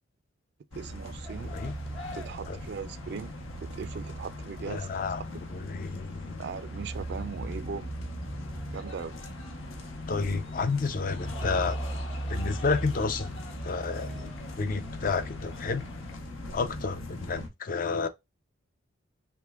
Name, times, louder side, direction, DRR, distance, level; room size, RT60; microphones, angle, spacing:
sound 1, 0.7-17.5, equal, 85° left, 0.9 m, -38 dB
voice 1, 0.7-1.5 2.1-3.3 3.6-4.9 6.4-8.0 8.7-9.2 16.5-16.6, right 5 dB, 55° right, 0.3 m, -39 dB
sound 2, 1.2-16.2, left 3 dB, 60° left, 1.1 m, -49 dB
voice 2, 1.4-1.7 2.5-2.6 4.7-5.2 5.5-6.4 10.1-11.8 12.3-15.8 16.5-18.1, left 4 dB, 40° left, 0.4 m, -31 dB
3.4 x 3.2 x 2.2 m
head